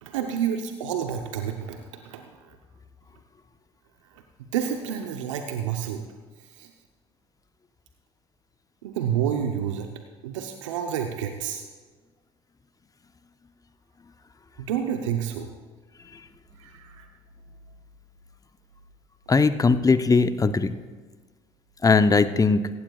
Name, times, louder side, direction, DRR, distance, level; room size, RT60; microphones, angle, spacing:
voice 1, 0.0-2.6 4.5-6.0 6.6-6.7 8.8-9.9 10.2-11.6 14.6-15.5 16.6-17.1, right 9 dB, 85° right, 5 dB, 0.8 m, -29 dB
voice 2, 19.3-20.8 21.8-22.7, left 4 dB, 20° left, 11 dB, 0.7 m, -19 dB
17.5 x 15.5 x 2.4 m, 1.4 s
hypercardioid pair, 60°, 16 cm